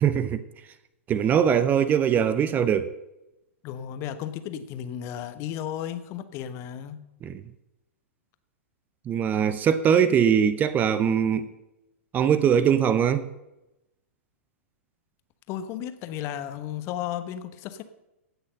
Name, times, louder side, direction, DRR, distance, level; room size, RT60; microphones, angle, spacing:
voice 1, 0.0-0.4 1.1-2.9 7.2-7.3 9.1-11.5 12.1-13.2, right 8 dB, 20° right, 0.6 m, -21 dB
voice 2, 3.6-7.0 15.5-17.8, left 10 dB, 35° left, 1.1 m, -34 dB
16.0 x 6.4 x 6.4 m
figure-of-eight pair, 105°, 8 cm